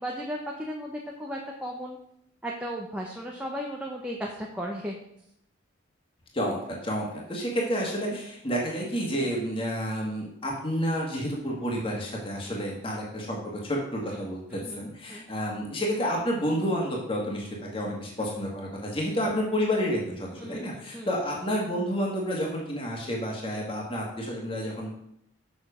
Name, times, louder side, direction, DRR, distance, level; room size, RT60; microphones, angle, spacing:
voice 1, 0.0-2.0 2.4-5.0 12.5-12.7 14.1-14.3 14.5-14.8 15.1-15.3 18.2-18.3 20.4-21.1, equal, 5° right, -1 dB, 0.8 m, -36 dB
voice 2, 6.3-24.9, equal, 25° left, -2 dB, 1.8 m, -30 dB
7.1 x 6.3 x 5.0 m, 0.74 s
head